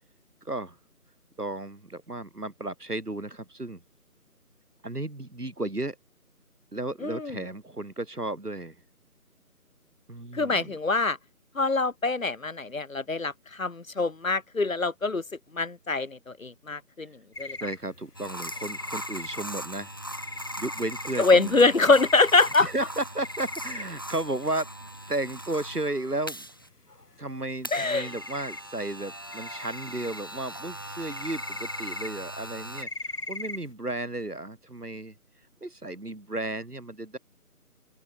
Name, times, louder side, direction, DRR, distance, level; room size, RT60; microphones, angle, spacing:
voice 1, 0.4-0.8 1.4-3.8 4.8-6.0 6.7-8.8 10.1-10.8 17.6-19.9 20.6-21.5 22.6-24.7 25.1-26.5 27.2-35.2 35.6-37.2, right 2 dB, 80° right, 5.4 m, -34 dB
voice 2, 7.0-7.4 10.3-11.2 11.6-15.2 15.5-17.1 17.4-17.6 21.2-22.7 27.7-28.1, left 3 dB, 60° left, 1.9 m, -24 dB
sound 1, 17.3-24.2 24.4-24.5 24.8-24.9 25.2-25.4 25.9-26.0 26.1-26.6 26.9-27.7 28.0-29.0 29.3-33.7, left 2 dB, 85° left, 2.2 m, -39 dB
sound 2, 18.1-26.7 27.6-32.8, right 1 dB, 15° left, 1.1 m, -40 dB
open air
figure-of-eight pair, 160°, 46 cm